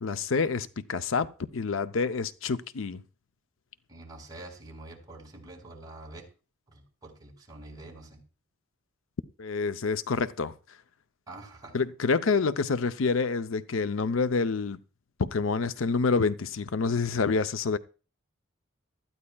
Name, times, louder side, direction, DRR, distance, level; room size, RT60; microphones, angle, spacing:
voice 1, 0.0-3.0 9.4-10.5 11.7-14.8 15.2-17.8, left 4 dB, 85° left, 0.6 m, -27 dB
voice 2, 3.9-6.3 6.7-8.2 11.3-11.8, right 2 dB, 20° right, 4.3 m, -46 dB
18.5 x 13.5 x 2.3 m
head